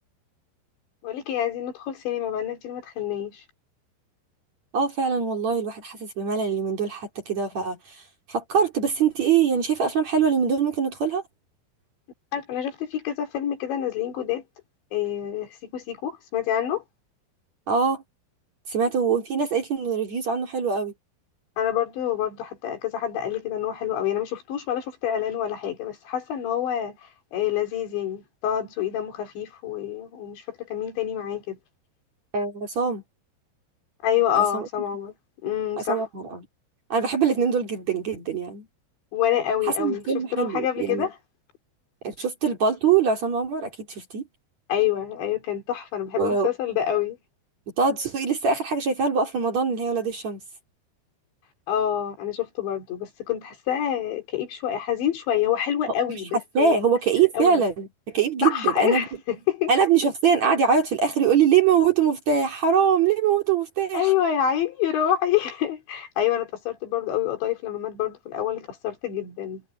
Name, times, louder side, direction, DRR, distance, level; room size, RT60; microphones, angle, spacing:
voice 1, 1.0-3.4 12.3-14.4 14.9-16.8 21.6-31.6 34.0-35.1 35.4-36.0 39.1-40.0 40.3-41.1 44.7-47.2 51.7-56.9 57.3-57.5 58.4-59.7 63.9-69.6, left 10 dB, 75° left, 5.8 m, -27 dB
voice 2, 4.7-8.0 8.3-11.2 17.7-18.0 18.7-20.9 32.3-33.0 34.3-34.7 35.8-36.4 36.9-38.6 39.6-41.1 42.0-44.2 46.2-46.5 47.8-50.4 56.5-59.1 59.7-64.1, right 6 dB, 45° right, 3.3 m, -23 dB
omnidirectional pair, 5.3 m